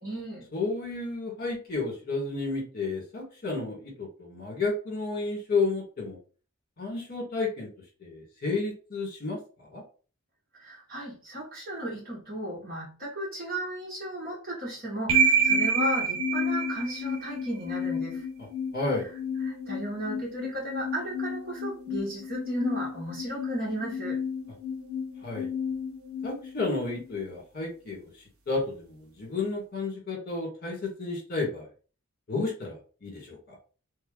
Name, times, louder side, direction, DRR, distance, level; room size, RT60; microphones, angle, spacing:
voice 1, 0.0-0.5 10.6-18.3 19.4-24.2, right 1 dB, 45° right, -3 dB, 1.8 m, -34 dB
voice 2, 0.5-6.2 6.8-7.7 8.0-9.8 18.7-19.1 25.2-25.5 26.2-28.1 28.5-31.7 32.3-33.5, left 3 dB, 45° left, 0 dB, 1.6 m, -32 dB
sound 1, 15.1-27.1, right 1 dB, 80° right, 0.9 m, -30 dB
3.4 x 2.7 x 3.8 m, 0.37 s
head